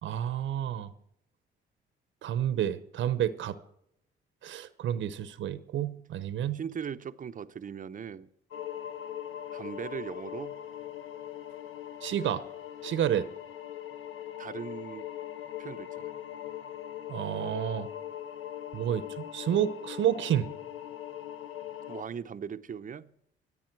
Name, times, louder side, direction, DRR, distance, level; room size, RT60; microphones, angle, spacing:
voice 1, 0.0-0.9 2.2-3.6 4.4-6.6 12.0-12.4 12.8-13.3 17.1-17.9 18.7-20.5, right 10 dB, 75° right, 0.9 m, -30 dB
voice 2, 6.5-8.3 9.5-10.6 14.4-15.1 15.6-16.2 21.9-23.1, right 7 dB, 40° right, 0.7 m, -39 dB
sound 1, 8.5-22.0, left 11 dB, 85° left, 1.1 m, -41 dB
24.5 x 8.4 x 4.6 m
cardioid pair, 90°, 20 cm